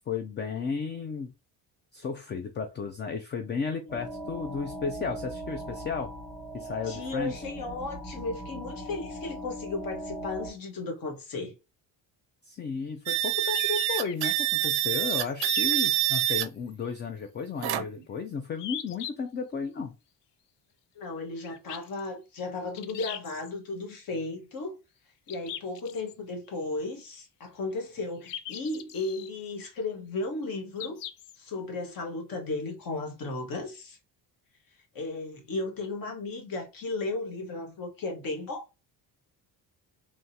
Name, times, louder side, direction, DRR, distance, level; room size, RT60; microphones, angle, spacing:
voice 1, 0.1-1.3 1.9-6.1 6.5-7.3 12.4-19.9, left 5 dB, 25° left, 0.4 m, -34 dB
sound 1, 3.9-10.5, right 1 dB, 10° left, 0.9 m, -39 dB
voice 2, 6.5-11.5 20.9-24.7 25.3-31.0 31.4-34.0 34.9-38.6, left 3 dB, 50° left, 1.4 m, -35 dB
sound 2, 13.1-16.5 17.6-18.0, right 16 dB, 60° right, 0.5 m, -26 dB
sound 3, 13.5-14.3 15.1-16.4 16.8-16.9 18.6-19.1 21.4-22.1 22.8-23.5 25.3-26.1 28.3-29.3 30.8-31.4, left 11 dB, 75° left, 0.6 m, -40 dB
3.6 x 3.0 x 2.7 m
cardioid pair, 145°, 42 cm